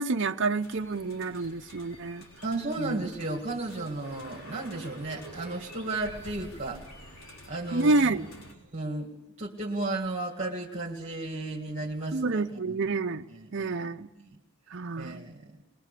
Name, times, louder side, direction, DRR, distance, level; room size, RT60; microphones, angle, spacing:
voice 1, 0.0-2.2 2.8-3.0 7.7-8.3 12.1-13.2 13.5-14.1 14.7-15.3, right 3 dB, 55° right, 0.7 m, -28 dB
sound 1, 0.6-8.5, equal, 70° left, 3.8 m, -48 dB
voice 2, 2.4-6.8 7.5-8.2 8.7-9.1 9.4-12.8 13.3-13.7 14.2-14.4 15.0-15.5, right 2 dB, 30° right, 2.1 m, -34 dB
22.0 x 21.5 x 6.8 m
head